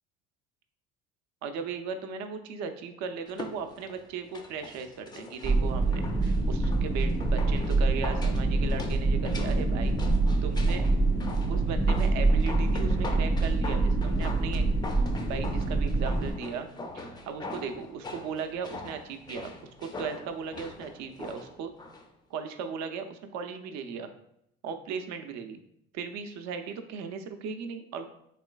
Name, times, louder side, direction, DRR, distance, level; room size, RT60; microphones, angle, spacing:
voice 1, 1.4-10.0 10.4-10.8 11.5-14.7 15.3-16.7 16.9-19.5 19.8-21.7 22.3-24.1 24.6-25.6 25.9-28.1, right 6 dB, 60° right, 7 dB, 0.5 m, -37 dB
sound 1, 3.3-22.1 22.4-22.5, left 2 dB, 15° left, 0.3 m, -42 dB
sound 2, 5.4-16.3, right 2 dB, 25° right, 0.8 m, -25 dB
3.2 x 3.0 x 2.2 m, 0.75 s
supercardioid pair, 75°, 32 cm